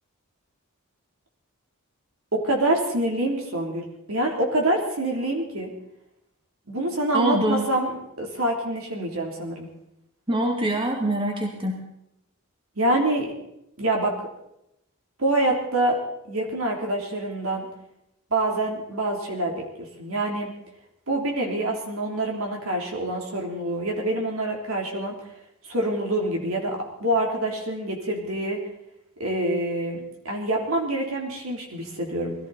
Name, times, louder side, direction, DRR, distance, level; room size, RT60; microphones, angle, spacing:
voice 1, 2.3-5.7 6.7-7.9 8.2-9.7 12.8-13.3 13.8-14.2 15.2-16.0 16.3-17.7 18.3-20.5 21.1-25.1 25.6-28.6 29.2-30.0 30.3-32.4, right 1 dB, 70° right, 0 dB, 3.5 m, -26 dB
voice 2, 7.1-7.7 10.3-11.9, right 1 dB, 25° right, 1 dB, 2.2 m, -24 dB
20.5 x 15.0 x 4.3 m, 0.82 s
head